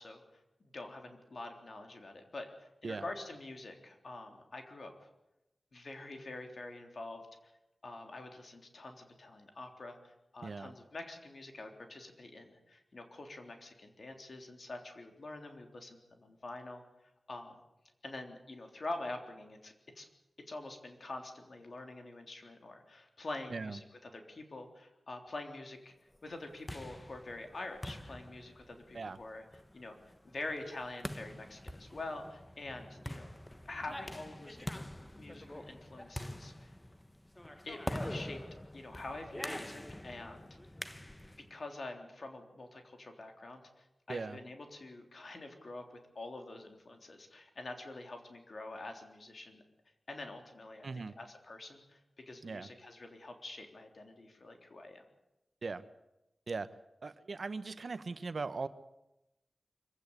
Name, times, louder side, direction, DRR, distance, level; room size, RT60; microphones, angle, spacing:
voice 1, 0.0-5.1 5.7-7.5 7.8-16.8 17.3-17.5 18.0-20.1 20.5-25.9 26.2-29.5 29.7-30.0 30.2-33.3 33.7-34.9 35.2-36.7 37.6-38.4 38.7-40.5 41.5-49.6 50.1-55.0, left 2 dB, 55° left, 4 dB, 3.5 m, -46 dB
voice 2, 10.4-10.7 23.5-23.8 28.9-29.2 44.1-44.4 50.8-51.1 52.4-52.7 55.6-55.8 56.5-56.7 57.0-58.7, right 4 dB, 60° right, 12 dB, 1.1 m, -39 dB
sound 1, 26.3-41.5, left 1 dB, 10° left, 0.9 m, -45 dB
24.5 x 16.0 x 8.3 m, 0.93 s
wide cardioid pair, 100°, 0 cm